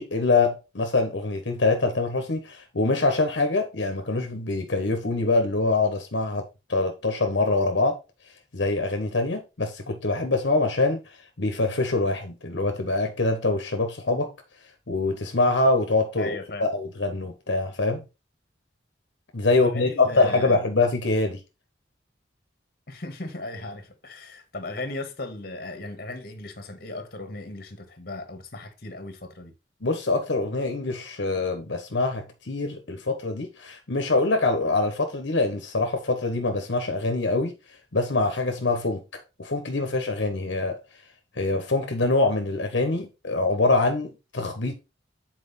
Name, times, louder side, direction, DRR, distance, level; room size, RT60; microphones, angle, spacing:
voice 1, 0.0-8.0 8.5-11.0 11.4-14.3 14.9-18.0 19.3-21.4 29.8-37.5 37.9-39.0 39.4-40.8 41.4-44.7, left 3 dB, 70° left, 1.1 m, -24 dB
voice 2, 16.2-16.7 19.5-20.6 22.9-29.5, left 2 dB, 50° left, 1.4 m, -37 dB
7.7 x 4.5 x 4.1 m
head